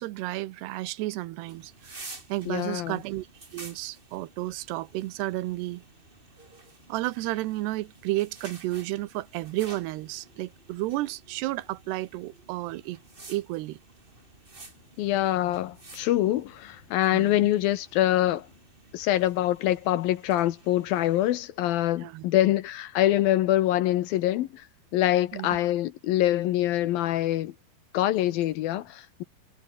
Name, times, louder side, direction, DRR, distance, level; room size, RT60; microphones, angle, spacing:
voice 1, 0.0-3.3 3.5-5.8 6.9-13.0 13.3-13.8 17.1-17.5 22.0-22.2 25.3-25.5, right 17 dB, 90° right, 3.0 m, -32 dB
sound 1, 1.5-21.4, right 3 dB, 15° right, 2.2 m, -51 dB
voice 2, 2.5-3.0 15.0-18.5 18.9-24.6 24.9-27.5 27.9-29.2, left 14 dB, 70° left, 2.5 m, -25 dB
omnidirectional pair, 4.7 m